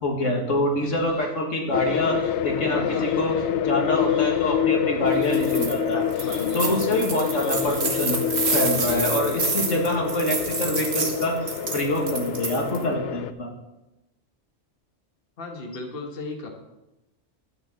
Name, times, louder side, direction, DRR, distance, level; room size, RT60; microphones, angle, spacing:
voice 1, 0.0-2.2 2.4-3.4 3.6-6.0 6.5-8.2 8.5-11.4 11.7-13.5, left 1 dB, 85° left, 1 dB, 2.2 m, -25 dB
sound 1, 0.8-1.2 1.7-2.4 2.8-3.5 3.9-4.5 5.0-5.7 6.1-6.7 7.2-7.8 8.3-9.0 9.3-9.5, equal, 25° left, 4.7 m, -48 dB
sound 2, 1.7-13.3, left 10 dB, 70° left, 0.8 m, -27 dB
voice 2, 2.7-3.2 6.2-6.9 15.4-16.5, left 3 dB, 50° left, 2 dB, 1.6 m, -35 dB
sound 3, 5.2-5.7 6.1-12.8, right 4 dB, 60° right, 1.6 m, -29 dB
12.0 x 9.3 x 4.3 m, 0.96 s
omnidirectional pair, 1.3 m